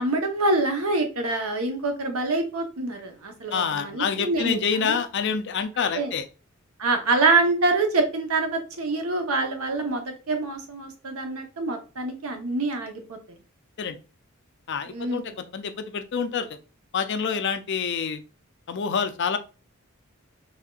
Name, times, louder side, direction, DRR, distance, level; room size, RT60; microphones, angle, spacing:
voice 1, 0.0-5.0 5.9-6.1 6.8-13.2 14.9-15.3, right 3 dB, 80° right, 4 dB, 0.9 m, -26 dB
voice 2, 3.5-6.2 13.8-14.0 14.7-16.6 16.9-18.2 18.7-19.4, left 6 dB, 55° left, 9 dB, 0.5 m, -27 dB
4.2 x 3.4 x 2.4 m, 0.33 s
head